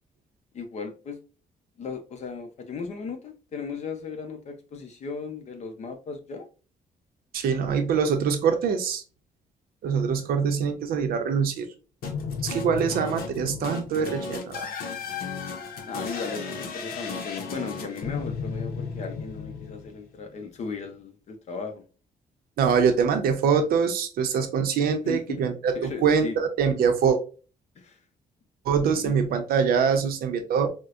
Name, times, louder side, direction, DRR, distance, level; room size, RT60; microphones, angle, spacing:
voice 1, 0.5-1.2 1.8-6.5 15.8-21.8 25.0-25.4 25.7-26.4 27.8-28.0 28.8-29.1, left 5 dB, 50° left, 0.7 m, -36 dB
voice 2, 7.3-9.0 9.8-11.7 12.4-14.7 22.6-27.2 28.7-30.7, right 6 dB, 85° right, 0.7 m, -24 dB
sound 1, 12.0-20.3, left 5 dB, 90° left, 0.7 m, -34 dB
4.4 x 2.1 x 2.4 m
cardioid pair, 160°, 15 cm